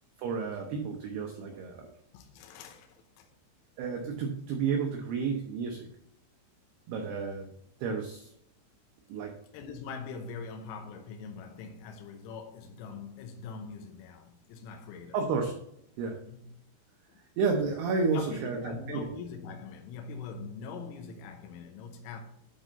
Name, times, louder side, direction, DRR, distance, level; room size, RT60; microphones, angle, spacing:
voice 1, 0.2-1.9 3.8-5.9 6.9-7.5 7.8-8.3 9.1-9.3 15.1-15.6 16.0-16.2 17.4-19.1, right 5 dB, 85° right, 2.3 m, -31 dB
voice 2, 2.1-3.3 9.5-15.2 16.3-16.5 17.1-17.2 18.1-22.2, left 5 dB, 80° left, 3.3 m, -43 dB
11.0 x 4.2 x 3.9 m
omnidirectional pair, 5.8 m